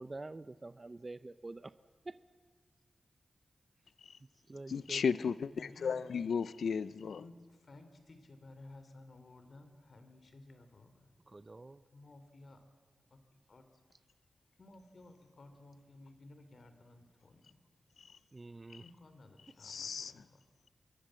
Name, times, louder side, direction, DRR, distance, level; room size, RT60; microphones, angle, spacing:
voice 1, 0.0-1.7 2.0-2.2 4.5-5.2 11.3-11.8 18.3-18.8, right 2 dB, 35° right, 0.6 m, -47 dB
voice 2, 4.7-7.2 18.7-18.8 19.6-20.2, left 6 dB, 85° left, 0.6 m, -35 dB
voice 3, 5.5-6.0 7.1-11.1 11.9-12.6 13.1-13.2 13.5-13.6 14.6-17.6 18.8-20.4, left 2 dB, 60° left, 3.3 m, -56 dB
26.5 x 22.0 x 7.7 m
cardioid pair, 55°, 0 cm